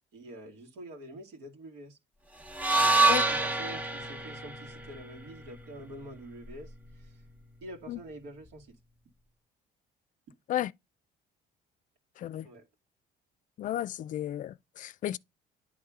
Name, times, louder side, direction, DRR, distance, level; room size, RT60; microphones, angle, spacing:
voice 1, 0.1-2.0 2.9-7.2 7.6-8.8 12.4-12.7, right 1 dB, 90° right, 2.2 m, -46 dB
sound 1, 2.5-6.7, right 3 dB, 10° right, 1.0 m, -28 dB
voice 2, 12.2-12.5 13.6-15.2, left 12 dB, 50° left, 0.4 m, -33 dB
10.0 x 3.5 x 3.6 m
cardioid pair, 110°, 17 cm